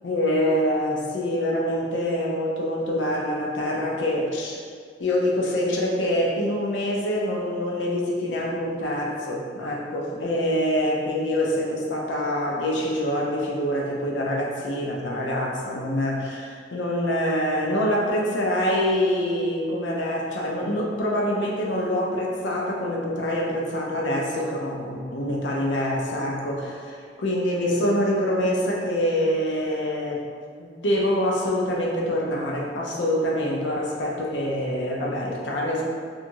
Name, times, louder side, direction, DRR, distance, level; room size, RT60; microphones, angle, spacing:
voice 1, 0.0-4.6 5.0-30.2 30.6-35.8, left 1 dB, 85° left, -2 dB, 0.5 m, -25 dB
2.9 x 2.4 x 2.6 m, 2.1 s
head